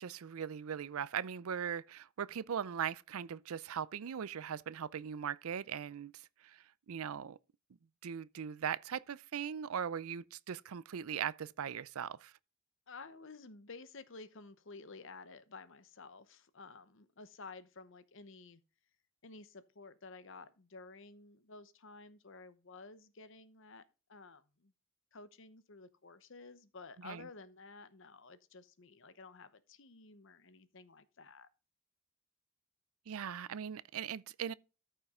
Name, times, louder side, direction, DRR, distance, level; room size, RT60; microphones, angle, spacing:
voice 1, 0.0-7.4 8.0-12.3 27.0-27.3 33.1-34.5, right 8 dB, 75° right, 0.4 m, -40 dB
voice 2, 12.9-18.6 19.2-24.7 25.1-31.5, left 3 dB, 60° left, 0.8 m, -53 dB
13.5 x 5.6 x 3.6 m
head